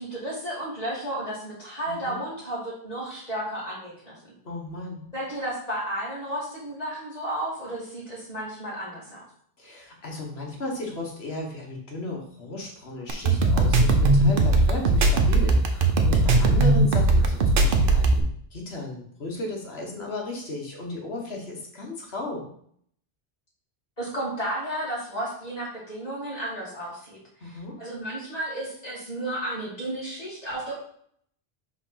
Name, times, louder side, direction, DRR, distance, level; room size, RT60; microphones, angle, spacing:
voice 1, 0.0-4.2 5.1-9.2 24.0-27.5 27.8-30.8, right 1 dB, 40° left, -6 dB, 2.4 m, -33 dB
voice 2, 1.9-2.2 4.4-5.0 9.6-22.4 27.4-27.7, left 2 dB, 75° left, 0 dB, 1.6 m, -35 dB
sound 1, 13.1-18.2, right 2 dB, 60° right, 0.9 m, -19 dB
5.0 x 3.6 x 5.7 m, 0.64 s
omnidirectional pair, 1.1 m